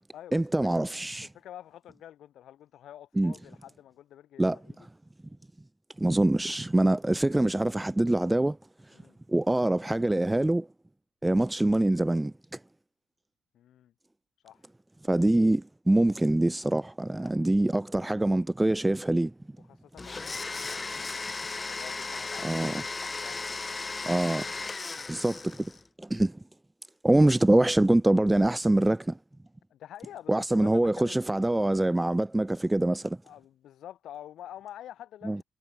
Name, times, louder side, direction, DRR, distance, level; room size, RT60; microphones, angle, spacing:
voice 1, 0.3-1.3 3.2-3.3 4.4-4.6 6.0-8.6 9.3-10.7 11.2-12.3 15.1-19.3 22.4-22.8 24.1-24.4 25.1-25.6 26.1-26.3 27.0-29.1 30.3-33.2 35.2-35.4, right 1 dB, 10° right, 0.7 m, -24 dB
voice 2, 1.2-4.8 8.9-9.2 13.5-13.9 14.4-14.7 17.2-18.1 19.7-23.8 29.7-31.5 33.2-35.4, left 11 dB, 65° left, 3.9 m, -48 dB
Domestic sounds home sounds, 20.0-25.8, left 3 dB, 20° left, 1.6 m, -36 dB
cardioid pair, 150°, 0 cm